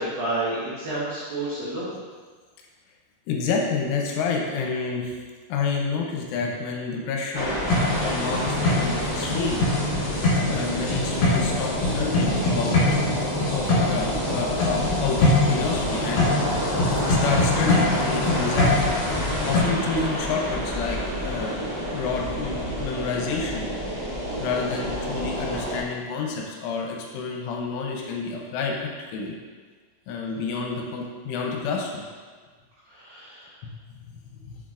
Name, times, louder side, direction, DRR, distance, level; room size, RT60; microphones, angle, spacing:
voice 1, 0.0-2.0 32.9-33.5, right 2 dB, 80° right, -9 dB, 2.0 m, -30 dB
voice 2, 3.3-5.2 5.5-7.6 8.0-9.6 10.5-13.2 13.5-16.3 17.1-18.9 19.4-21.6 21.9-23.7 24.4-29.3 30.1-32.0 33.6-33.8 34.4-34.6, left 4 dB, 80° left, 0 dB, 3.0 m, -29 dB
sound 1, 7.3-25.8, equal, 60° right, 1.3 m, -29 dB
sound 2, 7.7-19.6, left 2 dB, 55° left, 3.1 m, -24 dB
7.5 x 6.2 x 2.5 m, 1.5 s
omnidirectional pair, 5.8 m